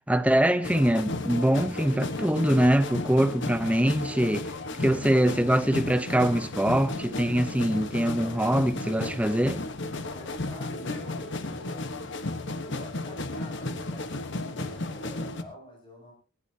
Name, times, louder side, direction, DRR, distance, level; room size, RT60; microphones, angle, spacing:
voice 1, 0.1-4.5 4.8-9.6, right 1 dB, 5° right, 0.8 m, -23 dB
sound 1, 0.6-15.4, left 2 dB, 60° left, 1.4 m, -34 dB
voice 2, 4.6-5.4 7.9-8.6 9.9-12.1 12.6-16.1, equal, 25° left, 8.0 m, -47 dB
19.5 x 16.0 x 2.9 m
head